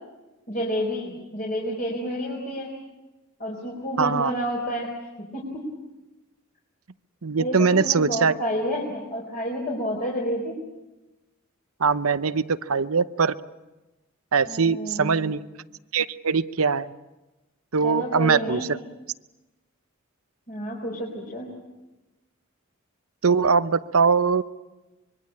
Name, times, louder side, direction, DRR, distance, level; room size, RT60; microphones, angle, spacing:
voice 1, 0.5-2.7 3.4-4.9 5.2-5.6 7.4-10.6 14.5-15.3 17.8-18.6 20.5-21.5, equal, 40° left, -3 dB, 4.5 m, -29 dB
voice 2, 4.0-4.3 7.2-8.3 11.8-13.3 14.3-15.4 15.9-16.9 17.7-18.8 23.2-24.4, right 5 dB, 90° right, 14 dB, 0.8 m, -22 dB
25.0 x 22.5 x 8.7 m, 1.1 s
head